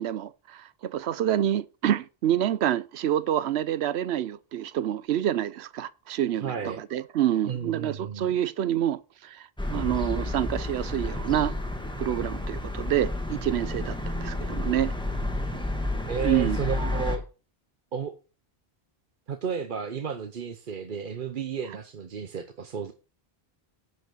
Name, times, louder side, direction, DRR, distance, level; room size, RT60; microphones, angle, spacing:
voice 1, 0.0-11.5 12.0-14.9 16.2-16.6, right 11 dB, 90° right, 0.9 m, -27 dB
voice 2, 6.4-6.8 7.4-8.3 16.1-17.2 17.9-18.1 19.3-22.9, right 6 dB, 55° right, 1.0 m, -32 dB
sound 1, 9.6-17.2, left 2 dB, 5° left, 1.4 m, -31 dB
11.0 x 5.3 x 6.2 m
omnidirectional pair, 1.1 m